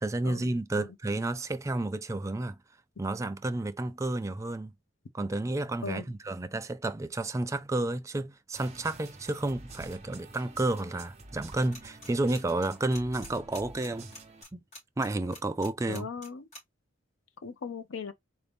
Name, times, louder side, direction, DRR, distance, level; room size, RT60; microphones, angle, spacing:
voice 1, 0.0-2.6 3.0-4.7 5.1-14.1 14.5-14.6 15.0-16.1, right 2 dB, 15° right, 0.3 m, -31 dB
sound 1, 8.5-14.4, right 3 dB, 35° right, 0.9 m, -48 dB
sound 2, 11.7-12.1 12.3-16.6, left 1 dB, 35° left, 2.6 m, -46 dB
voice 2, 15.9-16.4 17.4-18.1, left 5 dB, 85° left, 0.6 m, -38 dB
3.9 x 2.6 x 3.5 m
head